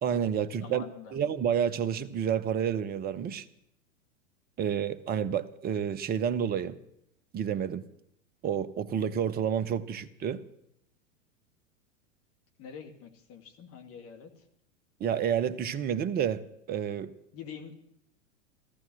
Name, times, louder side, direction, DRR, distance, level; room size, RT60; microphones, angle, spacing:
voice 1, 0.0-0.8 1.1-3.5 4.6-6.8 7.3-7.8 8.4-10.4 15.0-16.4 16.7-17.1, right 8 dB, 25° right, 0.9 m, -29 dB
voice 2, 0.6-1.2 12.6-14.5 17.3-17.7, left 7 dB, 35° left, 2.3 m, -45 dB
15.0 x 14.0 x 6.2 m
hypercardioid pair, 105°, 38 cm